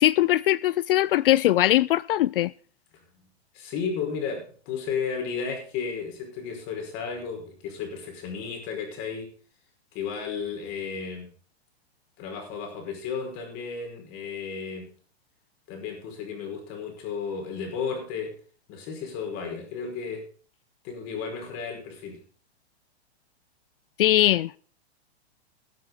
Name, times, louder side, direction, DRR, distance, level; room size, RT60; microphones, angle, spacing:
voice 1, 0.0-2.5 24.0-24.6, left 14 dB, 55° left, 0.4 m, -21 dB
voice 2, 3.5-9.3 9.9-11.3 12.2-14.9 15.7-18.3 18.7-20.2 20.8-22.2, left 6 dB, 40° left, 5.3 m, -33 dB
20.5 x 8.0 x 3.9 m
hypercardioid pair, 125°, 33 cm